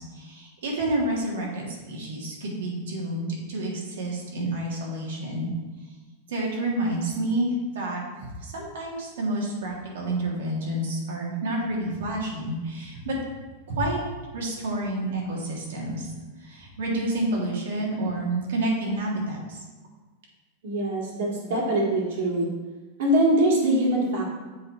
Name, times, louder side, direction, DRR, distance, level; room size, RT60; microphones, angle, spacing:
voice 1, 0.0-5.5 6.3-13.2 13.7-14.0 14.3-16.1 16.4-19.6, right 1 dB, 90° right, -3 dB, 1.9 m, -29 dB
voice 2, 20.6-22.5 23.0-24.2, right 1 dB, 60° right, -2 dB, 2.0 m, -23 dB
7.4 x 4.0 x 4.4 m, 1.2 s
supercardioid pair, 175°, 0 cm